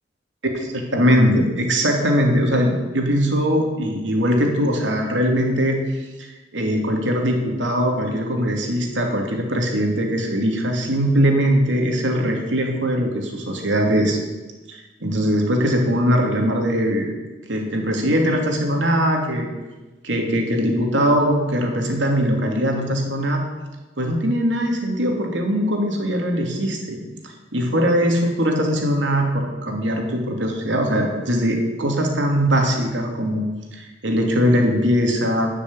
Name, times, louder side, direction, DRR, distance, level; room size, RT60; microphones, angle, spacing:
voice 1, 0.9-5.8 6.2-14.2 14.7-17.1 17.5-19.5 20.0-23.4 24.0-27.0 27.2-33.4 33.7-35.5, equal, 80° right, 2 dB, 2.9 m, -21 dB
13.5 x 7.0 x 9.6 m, 1.2 s
head